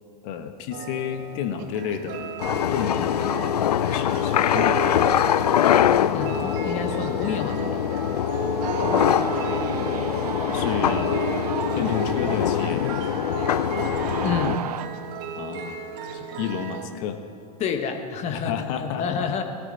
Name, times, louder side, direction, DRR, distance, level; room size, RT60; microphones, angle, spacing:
voice 1, 0.2-2.3 2.7-3.4 3.8-5.2 8.8-9.4 10.4-11.2 11.7-13.0 15.4-15.8 16.1-17.2 18.3-19.4, left 8 dB, 50° left, 8 dB, 1.3 m, -31 dB
sound 1, 0.7-16.9, right 6 dB, 50° right, 1.5 m, -35 dB
sound 2, 2.4-14.6, left 10 dB, 80° left, 0.4 m, -23 dB
voice 2, 6.1-7.8 14.2-14.6 17.6-18.5 18.8-19.4, left 6 dB, 35° left, 6 dB, 1.4 m, -28 dB
sound 3, 8.6-14.9, right 10 dB, 75° right, 0.6 m, -33 dB
17.0 x 13.5 x 4.1 m, 2.6 s
hypercardioid pair, 100°, 20 cm